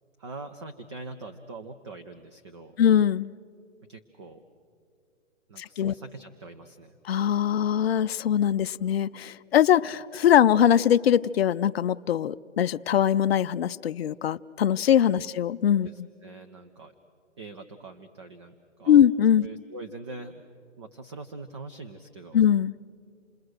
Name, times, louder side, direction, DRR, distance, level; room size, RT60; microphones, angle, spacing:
voice 1, 0.2-2.8 3.9-4.4 5.5-7.0 15.9-16.9 17.4-19.0 19.4-20.4 20.8-22.4, right 3 dB, 25° right, 6 dB, 0.6 m, -43 dB
voice 2, 2.8-3.3 5.6-5.9 7.1-16.1 18.9-19.5 22.3-22.7, left 10 dB, 55° left, 12 dB, 0.5 m, -22 dB
28.0 x 20.0 x 6.4 m, 2.3 s
hypercardioid pair, 155°, 37 cm